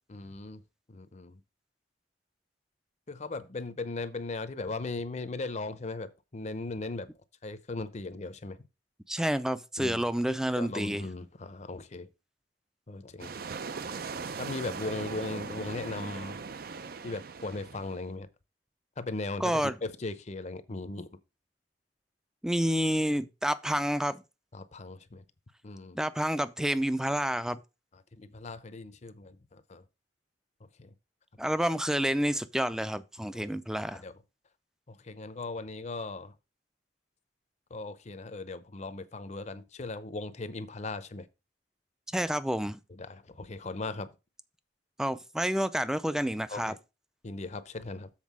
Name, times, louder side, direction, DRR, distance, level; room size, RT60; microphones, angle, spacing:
voice 1, 0.1-0.6 0.9-1.4 3.1-7.1 7.4-8.6 9.8-10.1 10.6-12.1 12.9-13.4 14.4-16.4 17.0-18.3 19.0-21.1 24.5-25.2 25.6-26.0 28.1-29.8 30.8-30.9 33.2-33.5 33.9-34.1 34.9-36.3 37.7-41.3 42.9-44.1 46.5-46.8 47.2-48.1, left 3 dB, 40° left, 0.7 m, -38 dB
voice 2, 9.1-11.1 19.4-19.8 22.4-24.2 25.9-27.6 31.4-34.0 42.1-42.8 45.0-46.7, equal, 5° right, 0.5 m, -29 dB
sound 1, 13.2-18.1, right 5 dB, 55° right, 0.6 m, -39 dB
7.4 x 4.3 x 6.1 m
head